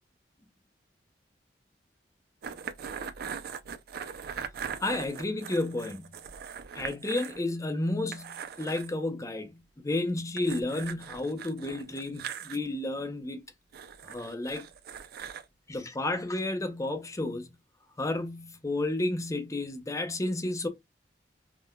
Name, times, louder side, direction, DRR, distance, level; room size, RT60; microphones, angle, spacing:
sound 1, 2.4-7.4 7.7-7.8 8.1-8.9 10.4-12.6 13.7-15.4, right 7 dB, 60° right, 0.4 m, -40 dB
voice 1, 4.8-6.1 6.7-13.4 14.0-14.7 15.7-17.5 18.0-20.7, left 2 dB, 20° left, 0.5 m, -32 dB
3.7 x 2.2 x 2.2 m
head